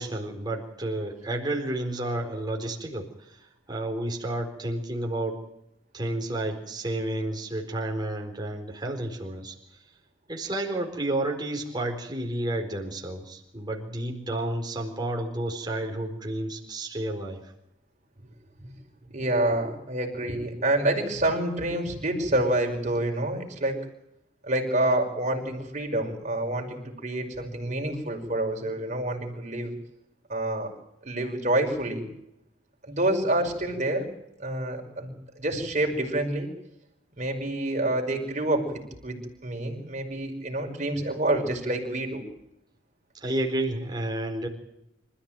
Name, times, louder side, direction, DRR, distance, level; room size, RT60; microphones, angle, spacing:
voice 1, 0.0-5.4 5.9-9.5 10.3-17.5 43.1-44.5, right 1 dB, 20° right, 1 dB, 4.3 m, -31 dB
voice 2, 19.1-23.9 24.4-29.7 30.3-30.7 31.0-32.1 32.8-34.1 34.4-36.5 37.2-38.7 39.0-42.2, right 1 dB, 35° right, 2 dB, 5.5 m, -27 dB
26.5 x 14.5 x 9.0 m, 0.83 s
head